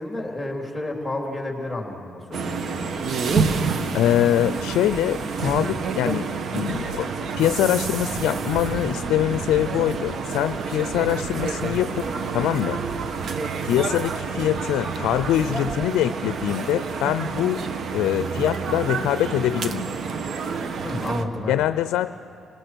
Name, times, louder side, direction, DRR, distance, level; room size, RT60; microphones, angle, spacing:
voice 1, 0.0-2.9 20.8-21.6, left 1 dB, 5° left, 0 dB, 3.8 m, -31 dB
sound 1, 2.3-21.2, right 5 dB, 55° right, 1.2 m, -28 dB
voice 2, 3.9-7.1 7.4-12.0 12.3-12.8 13.6-17.6 17.9-19.9 21.5-22.1, left 12 dB, 90° left, 13 dB, 0.4 m, -23 dB
29.0 x 19.0 x 6.2 m, 2.7 s
cardioid pair, 90°, 0 cm